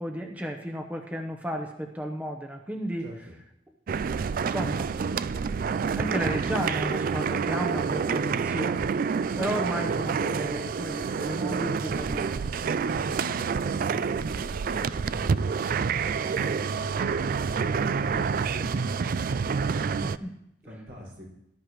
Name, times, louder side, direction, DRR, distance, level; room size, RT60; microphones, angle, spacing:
voice 1, 0.0-3.1 4.1-4.9 5.9-8.9 9.4-12.5 20.0-20.3, equal, 10° right, 2 dB, 0.9 m, -33 dB
voice 2, 3.0-3.3 12.9-15.4 15.7-16.9 17.4-19.4 20.6-21.2, equal, 75° right, -3 dB, 5.4 m, -43 dB
sound 1, 3.9-20.2, right 5 dB, 50° right, 0.3 m, -28 dB
19.0 x 12.0 x 3.1 m, 0.81 s
head